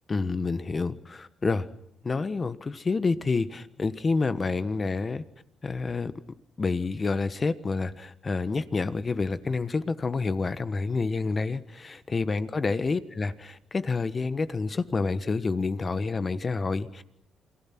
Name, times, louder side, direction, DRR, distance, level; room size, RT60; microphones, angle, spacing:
voice 1, 0.1-1.7 2.0-5.2 5.6-6.1 6.6-17.0, left 4 dB, 30° left, 13 dB, 1.4 m, -28 dB
28.5 x 20.5 x 6.1 m, 0.77 s
cardioid pair, 90°, 0 cm